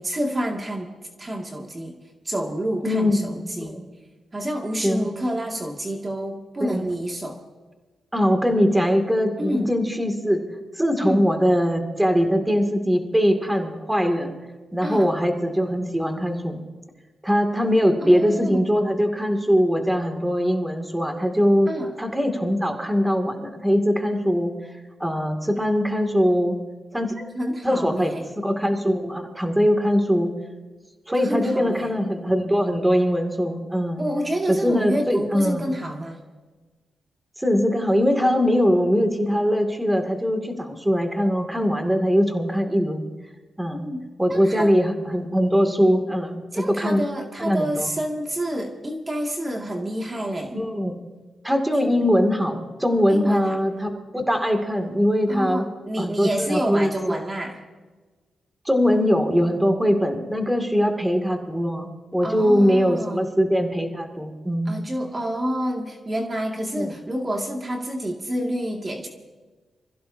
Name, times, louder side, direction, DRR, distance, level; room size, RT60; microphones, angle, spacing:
voice 1, 0.0-2.0 2.2-3.8 4.3-7.4 9.4-9.7 11.0-11.3 14.8-15.1 18.0-18.6 21.7-21.9 27.2-28.3 31.1-31.9 34.0-36.2 43.7-44.0 44.3-44.7 46.5-50.6 53.1-53.6 55.3-57.6 62.2-63.2 64.7-69.1, equal, 30° right, 1 dB, 2.3 m, -28 dB
voice 2, 2.8-3.9 4.8-5.1 6.6-6.9 8.1-10.4 10.7-14.3 14.7-16.6 17.2-21.7 22.0-24.5 25.0-26.6 26.9-27.1 27.6-30.3 31.1-34.0 34.5-35.6 37.4-43.1 43.6-43.8 44.2-47.0 47.4-47.9 50.5-50.9 51.4-55.6 56.0-57.2 58.6-64.7 66.7-66.9, equal, 10° right, 5 dB, 2.5 m, -21 dB
27.0 x 15.5 x 2.8 m, 1.3 s
cardioid pair, 60°, 0 cm